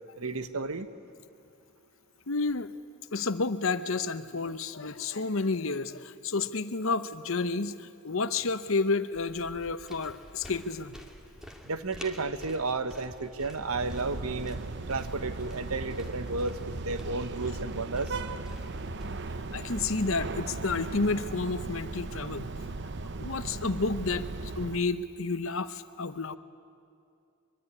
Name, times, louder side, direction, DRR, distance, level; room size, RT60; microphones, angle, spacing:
voice 1, 0.2-0.9 11.6-14.6 14.9-18.2, right 3 dB, 85° right, 11 dB, 1.2 m, -32 dB
voice 2, 2.3-2.7 3.1-11.0 19.5-22.5 23.2-26.4, left 3 dB, 65° left, 12 dB, 0.9 m, -30 dB
sound 1, 9.1-19.1, equal, 5° right, 2.1 m, -49 dB
sound 2, 13.6-24.8, right 3 dB, 55° right, 0.8 m, -37 dB
23.0 x 23.0 x 9.8 m, 2.5 s
head